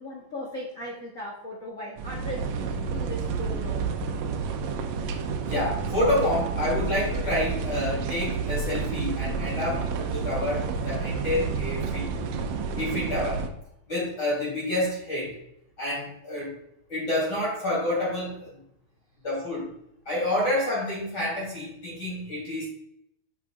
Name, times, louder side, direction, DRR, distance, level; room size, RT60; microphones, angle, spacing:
voice 1, 0.0-4.1, left 1 dB, 80° left, -4 dB, 0.7 m, -38 dB
sound 1, 2.0-13.5, right 5 dB, 85° right, 1.5 m, -30 dB
voice 2, 5.4-12.2 12.8-13.4 13.9-15.4 15.8-16.6 16.9-18.6 19.2-19.7 20.1-22.7, left 1 dB, 30° left, -7 dB, 3.6 m, -28 dB
9.0 x 6.8 x 2.4 m, 0.77 s
omnidirectional pair, 3.8 m